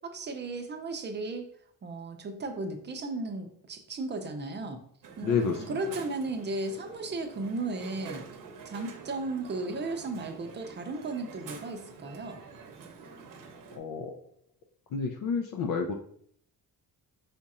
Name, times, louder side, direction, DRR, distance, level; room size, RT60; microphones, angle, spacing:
voice 1, 0.0-1.5 1.8-4.8 5.2-8.2 8.7-12.4, right 2 dB, 30° right, 5 dB, 0.5 m, -35 dB
Crowd, 5.0-13.8, right 5 dB, 60° right, 0.7 m, -47 dB
voice 2, 5.2-5.8 13.8-14.2 14.9-15.9, left 5 dB, 60° left, 4 dB, 0.5 m, -29 dB
5.0 x 2.4 x 4.1 m, 0.64 s
wide cardioid pair, 170°, 37 cm